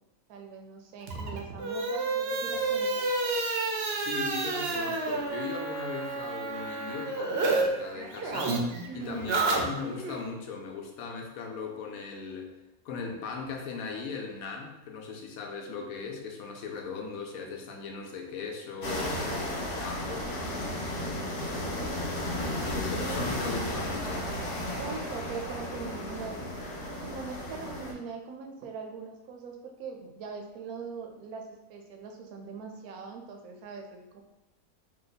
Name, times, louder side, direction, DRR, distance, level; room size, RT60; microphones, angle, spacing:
voice 1, 0.3-3.1 8.9-9.3 21.1-21.8 22.9-23.4 24.8-26.4 26.8-34.2, right 5 dB, 85° right, 3 dB, 1.1 m, -41 dB
sound 1, 1.0-7.6 7.9-10.2, right 3 dB, 65° right, 0.6 m, -30 dB
voice 2, 3.9-8.6 8.9-12.5 12.8-20.3 22.5-24.3, left 5 dB, 80° left, 2 dB, 1.0 m, -38 dB
sound 2, 18.8-27.9, left 1 dB, 55° left, 0.6 m, -34 dB
2.9 x 2.1 x 3.9 m, 0.96 s
omnidirectional pair, 1.5 m